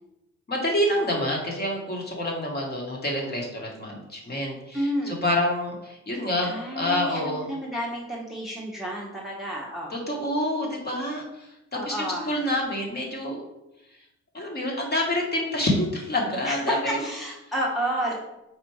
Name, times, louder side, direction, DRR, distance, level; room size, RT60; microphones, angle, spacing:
voice 1, 0.5-7.5 9.9-13.4 14.3-17.0, left 1 dB, 35° left, -1 dB, 1.3 m, -27 dB
voice 2, 4.7-5.2 6.4-10.0 11.7-12.4 16.5-18.1, equal, ahead, -3 dB, 0.8 m, -30 dB
4.5 x 2.5 x 4.6 m, 0.90 s
cardioid pair, 90°, 30 cm